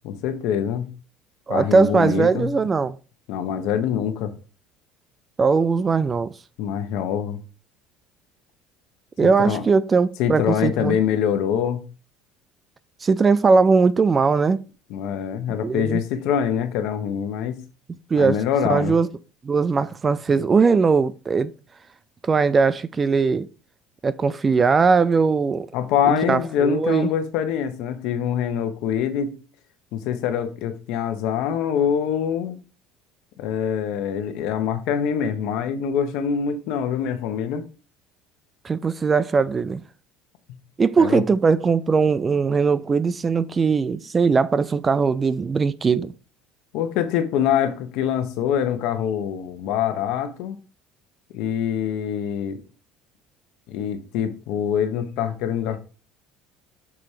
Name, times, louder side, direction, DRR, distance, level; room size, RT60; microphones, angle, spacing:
voice 1, 0.0-0.9 1.5-2.5 3.3-4.3 6.6-7.4 9.2-9.6 10.2-11.8 14.9-17.6 18.2-19.0 25.7-29.3 29.9-32.6 33.4-37.6 41.0-41.2 46.7-50.6 51.3-52.6 53.7-55.8, left 8 dB, 65° left, 1.1 m, -24 dB
voice 2, 1.5-3.0 5.4-6.3 9.2-11.0 13.0-14.6 15.6-16.0 18.1-18.4 18.7-19.1 19.4-21.5 22.2-23.5 24.0-25.7 26.1-27.1 38.6-39.8 40.8-46.1, right 5 dB, 20° right, 0.3 m, -20 dB
6.1 x 4.2 x 5.0 m
cardioid pair, 160°, 0 cm